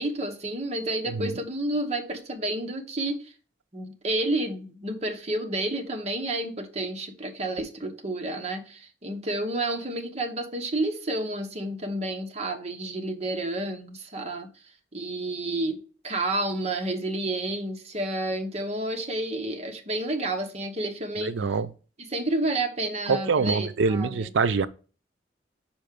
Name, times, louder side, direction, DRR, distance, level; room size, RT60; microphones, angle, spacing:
voice 1, 0.0-3.3 3.7-14.5 14.9-21.3 22.1-24.3, right 1 dB, 35° right, 1.0 m, -30 dB
voice 2, 21.2-21.7 23.1-24.7, right 4 dB, 90° right, 0.5 m, -25 dB
5.6 x 4.4 x 5.1 m
head